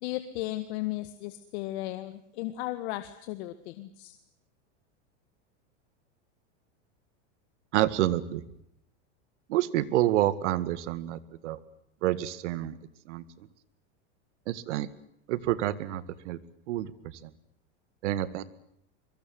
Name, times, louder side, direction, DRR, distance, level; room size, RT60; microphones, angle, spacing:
voice 1, 0.0-4.1, left 16 dB, 65° left, 10 dB, 1.9 m, -35 dB
voice 2, 7.7-8.4 9.5-11.6 12.0-12.8 13.1-13.2 14.5-14.9 15.3-16.4 16.7-17.3 18.0-18.4, right 14 dB, 75° right, 16 dB, 2.1 m, -28 dB
24.0 x 23.5 x 7.8 m, 0.74 s
supercardioid pair, 130°, 35 cm